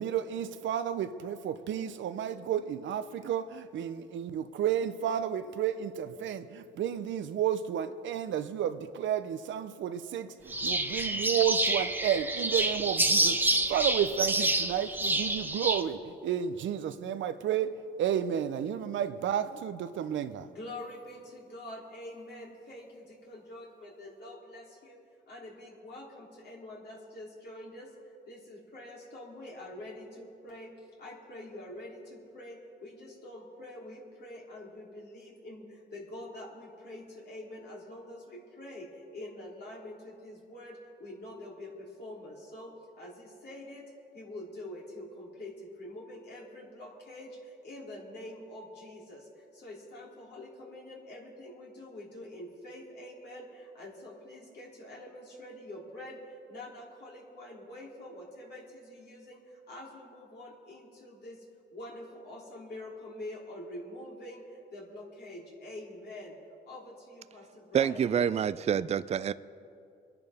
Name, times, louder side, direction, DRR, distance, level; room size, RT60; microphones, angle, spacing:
voice 1, 0.0-20.5, right 9 dB, 70° right, 0.7 m, -32 dB
sound 1, 10.5-15.8, right 2 dB, 10° right, 1.0 m, -28 dB
voice 2, 20.4-25.0 25.3-27.9 28.3-43.9 44.1-61.4 61.7-66.3 66.7-68.1, left 1 dB, 55° left, 3.3 m, -46 dB
voice 3, 67.7-69.3, right 8 dB, 35° right, 0.4 m, -27 dB
26.0 x 10.5 x 3.6 m
cardioid pair, 90°, 20 cm